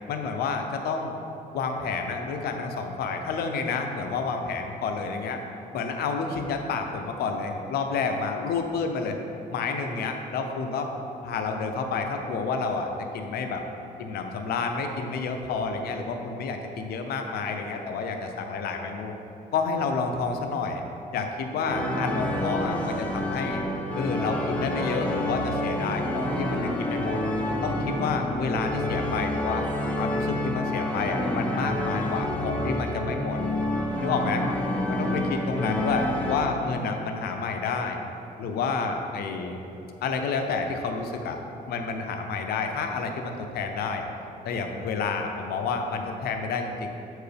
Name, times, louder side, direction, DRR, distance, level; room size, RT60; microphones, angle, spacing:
voice 1, 0.1-1.1 1.5-5.4 5.7-9.2 9.5-10.9 11.2-13.6 14.0-19.1 19.5-20.8 21.1-23.6 23.9-27.2 27.6-29.6 30.0-33.4 34.0-34.5 34.9-38.0 38.4-39.6 40.0-41.4 41.7-44.1 44.4-46.9, left 4 dB, 85° left, 4 dB, 0.6 m, -29 dB
sound 1, 21.7-36.4, left 1 dB, 10° left, 0.9 m, -28 dB
7.7 x 4.6 x 3.4 m, 2.9 s
cardioid pair, 90°, 16 cm